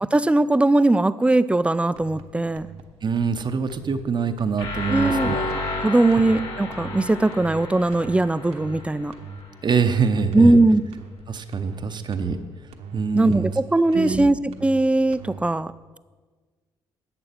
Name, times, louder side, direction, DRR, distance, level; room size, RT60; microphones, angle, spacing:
voice 1, 0.0-2.7 4.9-5.3 5.8-9.1 10.3-10.8 13.1-14.4 14.6-15.7, right 2 dB, 10° right, 16 dB, 0.4 m, -19 dB
sound 1, 1.9-2.2 2.5-2.8 3.1-3.4 3.7-4.0 4.3-4.6 5.0-5.2 5.5-5.8 6.1-6.4 6.7-7.0 7.3-7.6 7.9-8.2 8.5-8.8 9.1-9.4 9.7-10.0 10.3-10.6 10.9-11.2 11.5-11.8 12.1-12.4 12.7-13.0 13.3-13.6 13.9-14.2 14.5-14.8 15.1-15.4, right 6 dB, 70° right, 1.1 m, -40 dB
voice 2, 3.0-5.5 9.6-10.6 11.3-12.4 12.9-13.5 13.9-14.3, right 5 dB, 40° right, 8 dB, 0.8 m, -24 dB
sound 2, 4.6-9.5, left 2 dB, 50° left, 2.5 m, -31 dB
11.0 x 7.8 x 4.4 m, 1.4 s
hypercardioid pair, 50°, 12 cm